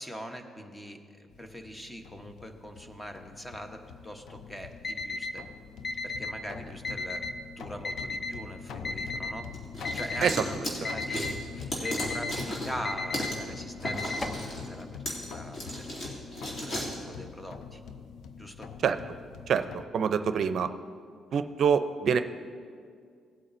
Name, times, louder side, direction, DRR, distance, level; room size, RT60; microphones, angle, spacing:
voice 1, 0.0-5.4 6.0-7.2 7.6-9.5 9.9-16.2 17.0-17.8 18.4-18.7, equal, 10° left, 5 dB, 1.0 m, -42 dB
sound 1, 1.3-19.9, left 6 dB, 70° left, 0.6 m, -44 dB
Alarm, 4.8-5.3 5.8-6.3 6.8-7.3 7.8-8.3 8.8-9.3 9.8-10.3 10.8-11.3 11.8-12.3 12.8-13.3 13.8-14.4, left 3 dB, 30° left, 0.7 m, -34 dB
sound 2, 9.5-12.8 13.1-13.4 13.8-17.0, equal, 45° left, 2.6 m, -35 dB
voice 2, 19.5-20.7 21.3-22.2, right 7 dB, 60° right, 10 dB, 0.5 m, -25 dB
18.0 x 8.3 x 2.6 m, 2.2 s
cardioid pair, 90°, 0 cm